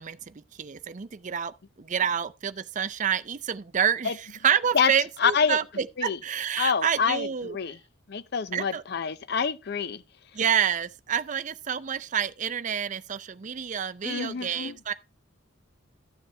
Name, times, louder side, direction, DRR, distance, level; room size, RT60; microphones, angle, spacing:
voice 1, 0.0-4.1 4.4-7.6 8.5-8.8 10.3-14.9, right 8 dB, 40° right, 0.5 m, -28 dB
voice 2, 5.2-5.6 6.0-6.2 6.6-7.8 8.1-10.0 14.0-14.8, left 6 dB, 55° left, 0.6 m, -27 dB
13.0 x 7.0 x 3.4 m
head